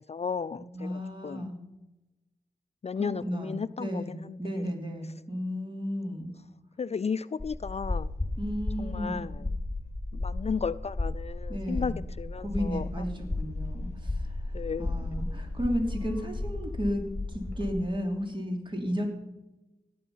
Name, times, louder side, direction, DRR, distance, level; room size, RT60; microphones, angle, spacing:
voice 1, 0.0-1.5 2.8-4.6 6.8-8.1 8.8-9.5 10.1-12.9 14.5-15.1, left 6 dB, 40° left, 15 dB, 0.4 m, -34 dB
voice 2, 0.6-1.6 3.0-6.3 8.4-9.2 11.5-11.9 12.4-14.3 14.8-17.0 17.3-19.1, equal, 30° right, 2 dB, 3.2 m, -33 dB
sound 1, 7.4-17.9, left 2 dB, 15° left, 3.5 m, -34 dB
17.5 x 9.4 x 5.7 m, 1.0 s
wide cardioid pair, 85°, 16 cm